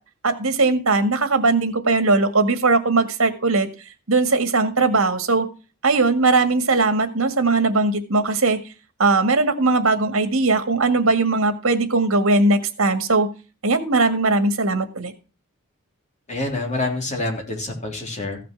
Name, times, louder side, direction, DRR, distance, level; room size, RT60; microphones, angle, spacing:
voice 1, 0.2-3.7 4.1-5.5 5.8-8.6 9.0-13.3 13.6-15.1, right 3 dB, 70° right, 9 dB, 1.9 m, -19 dB
voice 2, 16.3-18.4, left 2 dB, 35° left, 1 dB, 3.5 m, -27 dB
15.5 x 6.0 x 6.0 m, 0.33 s
head